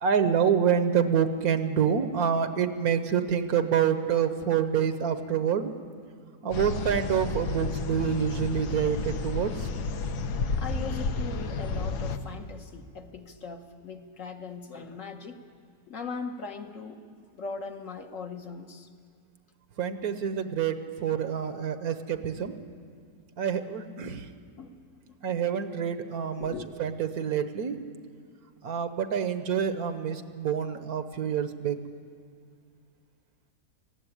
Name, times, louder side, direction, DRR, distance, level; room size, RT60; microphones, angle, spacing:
voice 1, 0.0-5.7 6.4-9.7 19.8-22.5 23.4-24.3 25.2-26.5 26.8-27.8 28.6-31.8, right 8 dB, 65° right, 10 dB, 1.3 m, -27 dB
sound 1, 6.5-12.2, left 4 dB, 75° left, 1.4 m, -31 dB
voice 2, 10.6-15.4 15.9-18.9 24.6-24.8 25.1-25.2 26.4-26.7, left 5 dB, 55° left, 5 dB, 1.4 m, -39 dB
19.0 x 15.0 x 9.8 m, 2.1 s
omnidirectional pair, 1.7 m